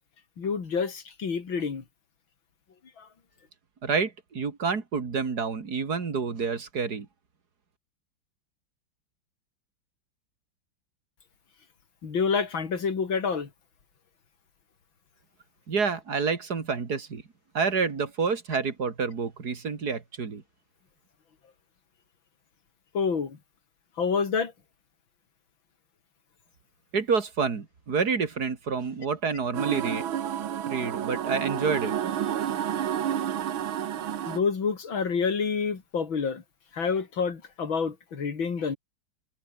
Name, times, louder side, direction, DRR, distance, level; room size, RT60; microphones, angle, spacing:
voice 1, 0.4-1.8 3.0-3.1 12.0-13.5 22.9-23.4 24.0-24.5 34.3-36.4 36.7-38.8, left 5 dB, 80° left, 3.6 m, -28 dB
voice 2, 3.8-7.1 15.7-17.2 17.5-20.4 26.9-30.0 30.7-31.9, right 5 dB, 50° right, 2.9 m, -28 dB
sound 1, 29.5-34.4, right 10 dB, 80° right, 2.1 m, -30 dB
omnidirectional pair, 2.2 m